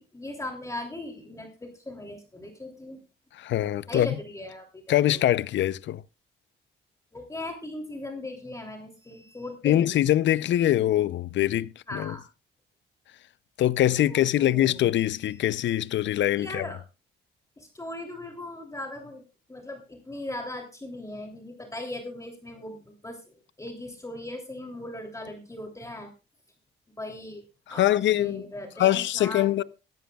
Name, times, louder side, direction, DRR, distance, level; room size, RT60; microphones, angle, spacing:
voice 1, 0.0-3.0 3.9-4.8 5.1-5.2 7.1-10.1 11.9-12.2 14.1-14.9 16.4-16.8 17.6-19.2 19.5-23.2 23.6-26.1 27.0-29.6, left 1 dB, 15° left, 3.1 m, -38 dB
voice 2, 3.4-4.1 4.9-6.0 9.6-12.2 13.6-16.7 27.7-28.4 28.8-29.6, left 13 dB, 70° left, 0.6 m, -23 dB
20.0 x 13.0 x 2.4 m
cardioid pair, 90°, 20 cm